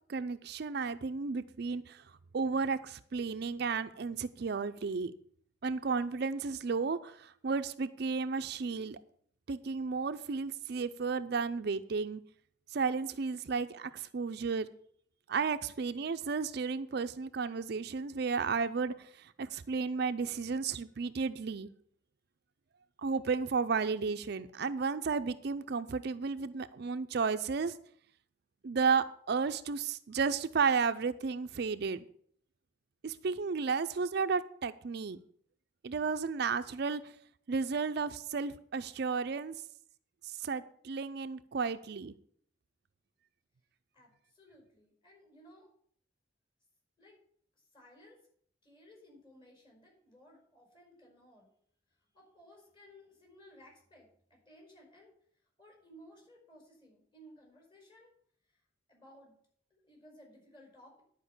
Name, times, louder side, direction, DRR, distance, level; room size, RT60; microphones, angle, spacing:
voice 1, 0.1-2.0 2.3-5.1 5.6-9.0 9.5-12.2 12.7-14.7 15.3-21.7 23.0-27.7 28.6-32.0 33.0-35.2 35.8-37.0 37.5-39.6 40.2-42.1, right 5 dB, 55° right, 10 dB, 0.4 m, -33 dB
voice 2, 43.9-45.7 47.0-47.1 47.7-48.2 48.6-51.5 52.1-55.1 55.6-58.1 58.9-59.3 59.7-61.0, equal, 25° left, 0 dB, 5.0 m, -58 dB
11.0 x 5.2 x 8.1 m, 0.62 s
head